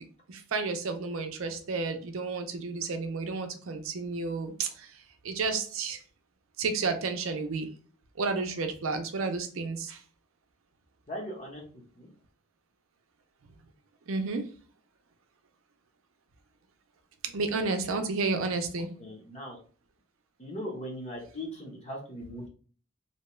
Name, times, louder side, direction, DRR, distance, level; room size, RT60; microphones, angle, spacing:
voice 1, 0.3-4.9 5.2-6.0 6.6-7.7 8.2-10.0 14.1-14.5 17.3-18.9, right 4 dB, 75° right, 7 dB, 0.5 m, -31 dB
voice 2, 11.1-11.6 12.0-12.1 19.0-19.6 20.4-22.5, equal, 30° left, 0 dB, 0.8 m, -39 dB
2.8 x 2.2 x 3.0 m, 0.41 s
head